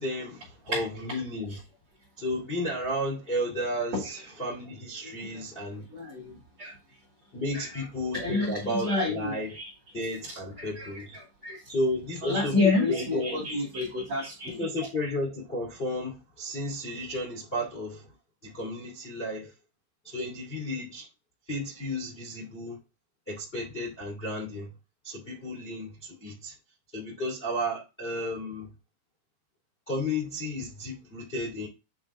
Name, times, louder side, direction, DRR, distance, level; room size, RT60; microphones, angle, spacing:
voice 1, 0.0-1.6 2.2-5.9 7.3-9.6 9.9-11.2 11.7-12.6 12.9-13.6 14.6-18.1 18.4-19.5 20.0-21.1 21.5-22.8 23.3-24.7 25.0-26.5 26.9-28.7 29.9-31.7, left 1 dB, 70° left, 0.5 m, -33 dB
voice 2, 5.0-5.4 5.9-6.7 7.5-7.7 8.1-9.7 10.6-10.9 11.4-11.6 12.2-14.6, left 3 dB, 40° right, 2.7 m, -29 dB
8.6 x 3.5 x 3.7 m
omnidirectional pair, 5.8 m